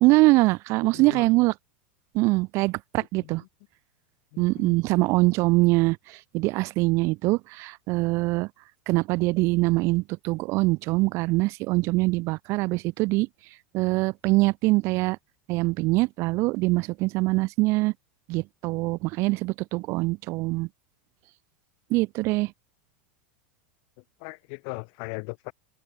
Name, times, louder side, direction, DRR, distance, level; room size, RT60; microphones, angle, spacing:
voice 1, 0.0-1.5 2.1-3.4 4.4-6.0 6.3-8.5 8.9-13.3 13.7-15.2 15.5-17.9 18.3-20.7 21.9-22.5, right 22 dB, 50° right, 1.8 m, -23 dB
voice 2, 0.9-1.3 3.2-3.5 4.3-4.8 24.2-25.5, left 40 dB or more, 55° left, 7.4 m, -38 dB
open air
hypercardioid pair, 85°, 6 cm